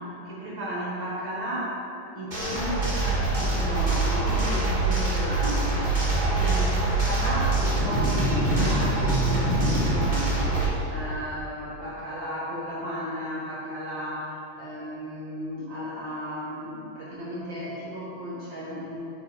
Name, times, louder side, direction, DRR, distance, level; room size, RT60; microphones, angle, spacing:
voice 1, 0.0-1.8 2.1-5.7 6.2-10.5 10.9-19.0, equal, 55° right, -6 dB, 1.4 m, -34 dB
sound 1, 2.3-10.6, right 2 dB, 30° right, 0.9 m, -24 dB
9.3 x 4.1 x 4.9 m, 2.9 s
omnidirectional pair, 3.5 m